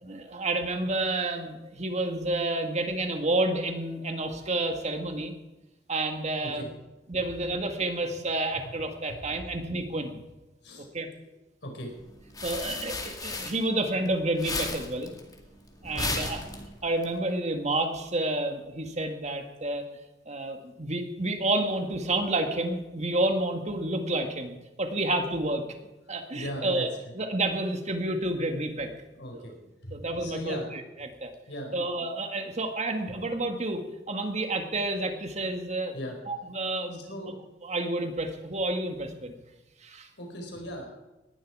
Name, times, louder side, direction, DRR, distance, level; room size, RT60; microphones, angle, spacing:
voice 1, 0.0-5.3 5.9-6.7 7.1-10.2 10.9-11.1 12.4-15.1 15.8-16.4 16.8-19.8 20.3-25.6 26.1-26.9 27.2-28.9 29.3-29.5 29.9-31.3 31.7-33.8 34.1-35.9 36.3-37.2 37.6-39.3 39.8-40.1, right 2 dB, 40° right, 5 dB, 1.9 m, -30 dB
voice 2, 11.6-11.9 15.9-16.2 26.3-26.9 29.1-29.5 29.8-30.7 31.0-31.1 31.5-31.7 35.9-36.1 36.9-37.3 40.2-40.8, equal, 80° left, 1 dB, 4.6 m, -38 dB
sound 1, 12.0-14.1 14.3-17.0, left 3 dB, 20° left, 2.3 m, -34 dB
19.5 x 11.5 x 4.8 m, 1.1 s
head